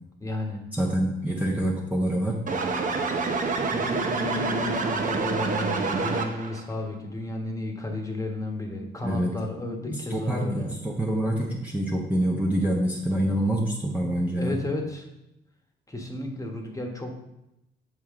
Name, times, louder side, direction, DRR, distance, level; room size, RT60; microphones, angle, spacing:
voice 1, 0.2-0.6 3.6-10.7 14.3-15.0 15.9-17.1, left 2 dB, 15° left, 2 dB, 1.3 m, -33 dB
voice 2, 0.7-2.4 9.0-9.3 9.9-14.6, right 1 dB, 10° right, -3 dB, 0.9 m, -26 dB
sound 1, 2.5-6.6, right 4 dB, 40° right, 0.9 m, -27 dB
7.4 x 4.7 x 3.7 m, 0.89 s
cardioid pair, 90°, 20 cm